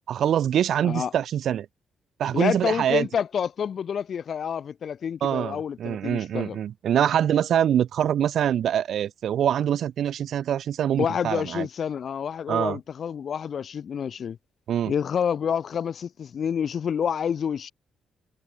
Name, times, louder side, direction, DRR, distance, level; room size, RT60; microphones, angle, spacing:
voice 1, 0.1-1.7 2.2-3.1 5.2-11.7 12.5-12.8 14.7-14.9, right 10 dB, 60° right, 5.3 m, -24 dB
voice 2, 2.3-6.6 11.0-14.4 14.9-17.7, left 7 dB, 55° left, 1.6 m, -28 dB
hypercardioid pair, 40°, 0 cm